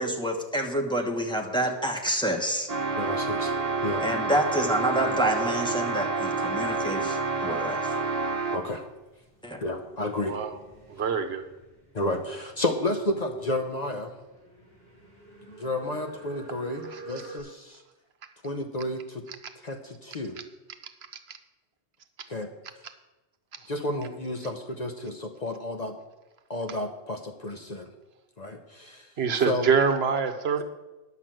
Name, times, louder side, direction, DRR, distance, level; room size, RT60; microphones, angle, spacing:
voice 1, 0.0-2.7 4.0-7.9 9.4-9.6, right 1 dB, 5° left, 1 dB, 1.2 m, -28 dB
sound 1, 2.7-8.8, right 4 dB, 35° right, 1.1 m, -28 dB
voice 2, 3.0-3.5 3.8-4.0 8.5-8.8 9.6-10.4 11.9-14.1 15.5-17.8 18.4-19.3 19.6-20.4 22.3-22.5 23.7-26.0 26.5-27.9 28.4-29.1 29.5-29.7, left 1 dB, 40° left, 4 dB, 0.8 m, -31 dB
sound 2, 6.9-17.4, right 3 dB, 65° left, 4.9 m, -50 dB
voice 3, 10.2-10.6 10.9-11.5 16.9-17.0 21.3-21.4 29.2-30.6, right 6 dB, 70° right, 7 dB, 1.1 m, -25 dB
10.5 x 5.9 x 7.6 m, 1.1 s
omnidirectional pair, 1.2 m